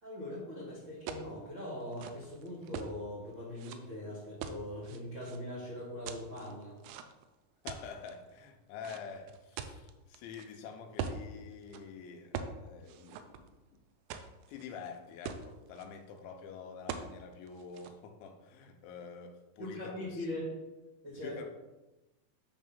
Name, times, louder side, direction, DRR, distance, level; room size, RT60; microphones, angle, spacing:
voice 1, 0.0-6.8 19.6-20.6 21.0-21.5, left 1 dB, 55° right, -7 dB, 1.3 m, -41 dB
sound 1, 1.1-1.3 1.8-2.9 3.6-3.8 4.4-5.4 6.1-7.3 7.7-8.1 8.8-10.5 11.0-11.2 11.6-11.8 12.3-12.6 12.9-13.7 14.1-14.7 15.0-15.1 15.3-15.9 16.9-17.1 17.5-17.9, right 7 dB, 85° right, 2.4 m, -42 dB
voice 2, 7.6-13.8 14.5-20.3 21.2-21.5, left 6 dB, 85° left, 5 dB, 3.0 m, -47 dB
9.7 x 3.2 x 5.4 m, 1.1 s
omnidirectional pair, 5.4 m